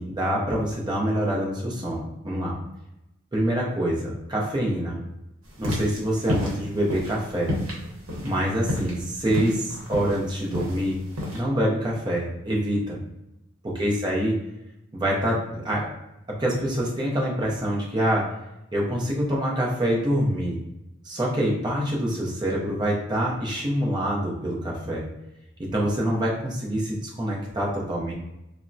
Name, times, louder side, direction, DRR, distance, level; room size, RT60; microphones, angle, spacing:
voice 1, 0.0-2.6 3.3-5.0 5.6-7.5 8.2-11.0 11.3-13.0 13.6-14.3 14.9-15.9 16.3-18.3 18.7-20.6 21.0-25.0 25.6-28.1, equal, 20° right, -3 dB, 0.5 m, -26 dB
sound 1, 5.5-11.4, left 1 dB, 70° right, 0.8 m, -30 dB
3.3 x 2.0 x 2.5 m, 0.89 s
head